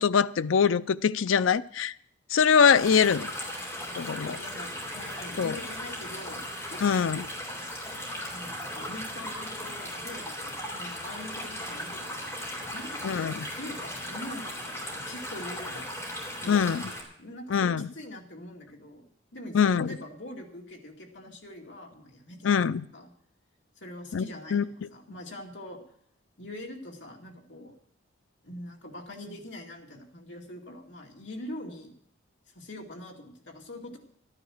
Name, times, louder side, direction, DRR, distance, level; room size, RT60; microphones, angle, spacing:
voice 1, 0.0-1.9 2.3-3.3 4.0-4.4 5.4-5.6 6.8-7.3 13.0-13.5 16.5-16.8 17.5-17.9 19.5-19.9 22.4-22.8 24.1-24.2 24.5-24.6, left 6 dB, 80° left, 0.4 m, -23 dB
sound 1, 2.7-17.0, left 1 dB, 15° left, 3.5 m, -37 dB
voice 2, 4.2-7.1 7.6-7.8 8.3-15.8 16.4-16.7 17.2-22.6 22.9-23.1 23.8-25.8 26.4-27.8 28.4-31.9 32.5-34.0, left 1 dB, 65° left, 2.3 m, -43 dB
13.5 x 9.8 x 6.4 m
head